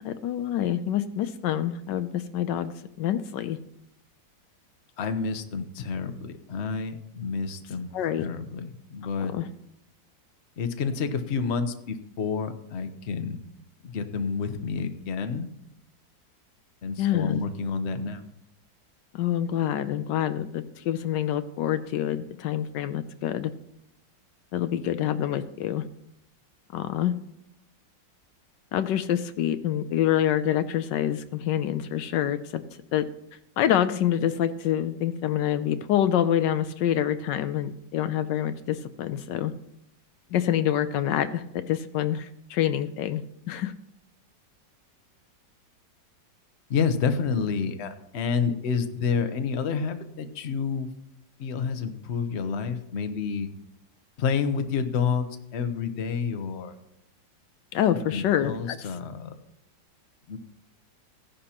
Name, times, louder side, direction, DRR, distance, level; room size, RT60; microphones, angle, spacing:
voice 1, 0.0-3.6 7.9-8.3 9.3-9.5 17.0-17.4 19.1-23.5 24.5-25.8 26.7-27.1 28.7-32.6 32.9-33.1 33.6-39.5 40.3-43.7 57.7-58.9, left 11 dB, 80° left, 11 dB, 1.2 m, -26 dB
voice 2, 5.0-7.9 8.2-9.4 10.6-13.4 13.8-15.5 16.8-18.2 46.7-50.9 51.4-53.5 54.2-55.3 55.5-56.8 58.1-59.4 60.3-60.4, left 5 dB, 45° left, 8 dB, 1.0 m, -29 dB
16.5 x 10.5 x 2.9 m, 0.78 s
omnidirectional pair, 2.0 m